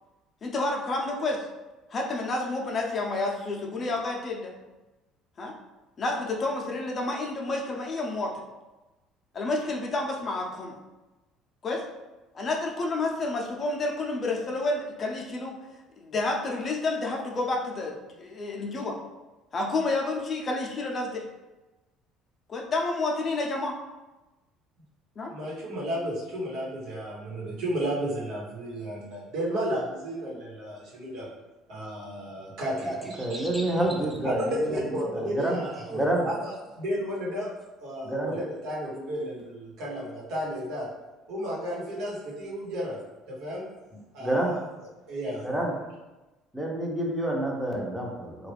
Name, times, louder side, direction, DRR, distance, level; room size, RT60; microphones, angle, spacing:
voice 1, 0.4-1.5 1.9-4.5 5.4-5.5 6.0-8.3 9.3-10.7 11.6-11.8 12.3-15.5 16.0-19.0 19.5-21.3 22.5-23.7 25.2-25.3, left 2 dB, 40° left, 0 dB, 0.6 m, -29 dB
voice 2, 25.3-31.3 31.7-33.5 34.2-37.5 37.8-40.9 41.3-43.0 43.3-43.7 44.1-44.6 45.1-45.5, equal, 70° right, -5 dB, 1.2 m, -33 dB
voice 3, 32.8-34.8 35.1-36.3 38.0-38.4 44.2-44.6 45.4-45.7 46.5-48.5, right 1 dB, 5° right, -1 dB, 0.8 m, -28 dB
3.1 x 2.4 x 3.3 m, 1.1 s
supercardioid pair, 75°, 0 cm